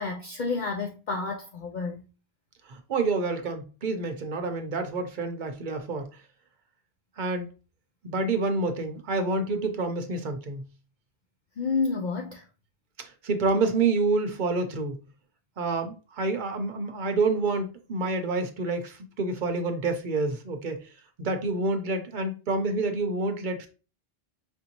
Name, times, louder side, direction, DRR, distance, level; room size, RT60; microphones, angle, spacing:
voice 1, 0.0-2.1 11.6-12.5, left 4 dB, 55° left, 0.6 m, -30 dB
voice 2, 2.7-6.1 7.2-7.5 8.0-10.7 13.0-15.0 15.6-20.9 21.2-23.7, right 3 dB, 55° right, 0.8 m, -28 dB
5.0 x 2.7 x 2.9 m
omnidirectional pair, 1.1 m